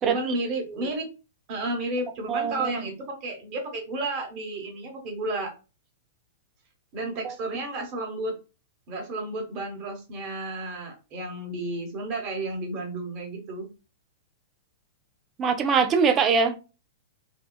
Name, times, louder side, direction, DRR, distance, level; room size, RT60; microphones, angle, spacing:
voice 1, 0.0-1.1 1.5-5.5 6.9-8.3 8.9-13.7, right 2 dB, 45° right, 1.3 m, -32 dB
voice 2, 2.3-2.8 7.2-7.3 15.4-16.6, right 5 dB, 25° right, 0.5 m, -23 dB
2.8 x 2.3 x 2.3 m
hypercardioid pair, 120°, 0 cm